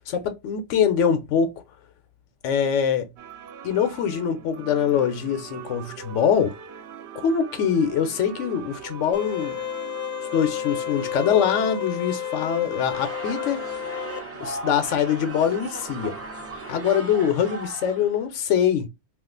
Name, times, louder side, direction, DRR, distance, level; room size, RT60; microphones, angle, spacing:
voice 1, 0.0-1.5 2.4-3.1 3.6-6.5 7.1-9.6 10.3-13.6 14.4-16.2 16.7-18.9, left 8 dB, 85° left, 1.0 m, -23 dB
sound 1, 3.2-16.9, right 8 dB, 70° right, 0.8 m, -42 dB
sound 2, 9.1-14.2, left 10 dB, 65° left, 0.7 m, -31 dB
sound 3, 12.9-18.2, right 1 dB, 20° right, 0.3 m, -37 dB
2.4 x 2.3 x 3.7 m
omnidirectional pair, 1.2 m